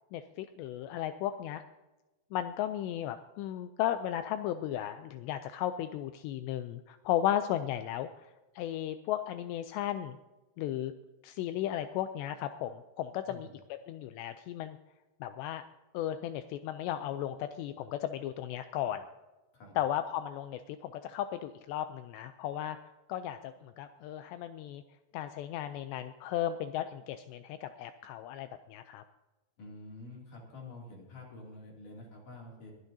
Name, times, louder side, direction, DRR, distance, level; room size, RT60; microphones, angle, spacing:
voice 1, 0.1-1.6 2.3-8.3 8.6-10.2 10.6-10.9 11.2-13.5 13.9-14.8 15.2-15.6 15.9-19.0 19.8-22.8 23.1-24.8 25.1-29.0, left 11 dB, 90° left, 10 dB, 2.4 m, -35 dB
voice 2, 29.6-32.7, left 2 dB, 45° left, -1 dB, 3.7 m, -48 dB
26.0 x 9.5 x 2.7 m, 1.1 s
omnidirectional pair, 5.5 m